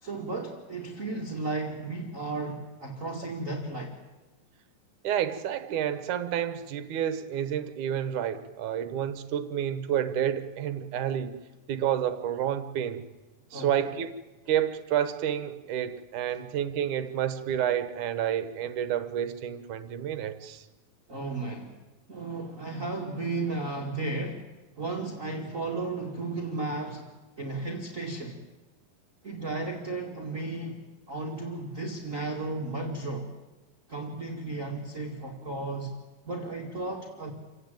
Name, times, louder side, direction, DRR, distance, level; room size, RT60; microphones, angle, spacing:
voice 1, 0.0-4.0 13.5-13.7 21.1-21.8 22.1-24.5 24.8-27.1 27.4-28.4 29.2-30.8 31.1-33.3 33.9-35.9 36.2-37.3, right 3 dB, 25° right, 2.0 m, -34 dB
voice 2, 5.0-11.4 11.7-13.0 13.5-14.2 14.5-20.7, right 10 dB, 65° right, 2.4 m, -29 dB
28.0 x 17.0 x 9.1 m
omnidirectional pair, 4.1 m